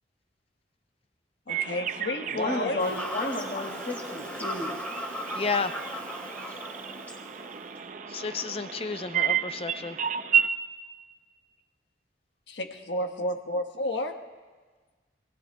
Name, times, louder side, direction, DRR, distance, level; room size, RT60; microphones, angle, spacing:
voice 1, 1.5-2.8 6.9-7.0 12.5-14.1, left 1 dB, 80° left, 5 dB, 1.3 m, -31 dB
sound 1, 1.5-10.5, right 8 dB, 45° right, 0.5 m, -32 dB
voice 2, 2.3-4.7, left 2 dB, 55° left, -3 dB, 2.7 m, -32 dB
Fowl / Bird vocalization bird call bird song, 2.8-7.8, equal, 10° left, 2.4 m, -38 dB
voice 3, 5.3-5.7 8.1-10.0, left 4 dB, 30° left, 9 dB, 0.6 m, -31 dB
26.0 x 18.5 x 2.3 m, 1.4 s
head